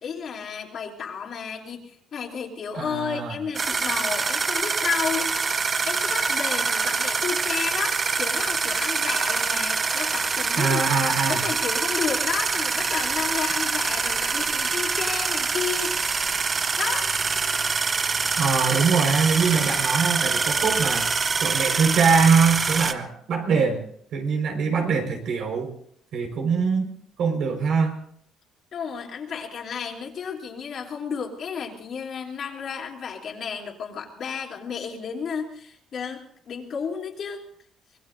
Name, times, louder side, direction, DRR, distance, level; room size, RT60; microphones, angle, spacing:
voice 1, 0.0-5.3 5.8-16.2 16.8-17.1 28.7-37.4, left 6 dB, 50° left, 0 dB, 3.1 m, -32 dB
voice 2, 2.7-3.4 10.6-11.4 18.4-21.1 21.4-23.8 24.1-25.7 26.1-26.9 27.2-28.0, right 5 dB, 65° right, 3 dB, 4.7 m, -23 dB
sound 1, 3.6-22.9, right 4 dB, 30° right, 0.8 m, -25 dB
25.0 x 21.0 x 2.6 m, 0.65 s
cardioid pair, 130°, 0 cm